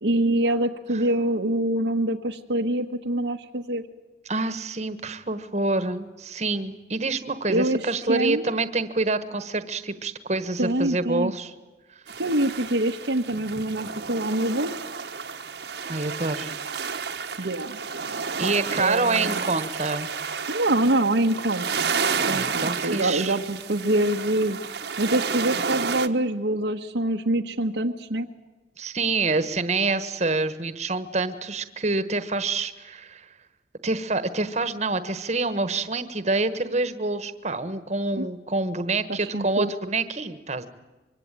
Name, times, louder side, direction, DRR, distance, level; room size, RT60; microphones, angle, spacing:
voice 1, 0.0-3.8 7.5-8.5 10.6-11.3 12.2-14.7 17.4-17.8 18.4-18.5 18.8-19.4 20.5-22.0 22.3-24.6 25.0-28.3 38.2-38.3 39.1-39.7, right 1 dB, 90° right, 1 dB, 1.3 m, -25 dB
voice 2, 4.3-11.5 15.9-16.5 17.4-17.5 18.4-20.1 22.3-23.4 28.8-33.3 33.8-40.7, right 3 dB, 40° right, 12 dB, 1.3 m, -27 dB
sound 1, 12.1-26.1, right 5 dB, 70° right, 1.3 m, -31 dB
25.0 x 24.0 x 9.1 m, 1.1 s
head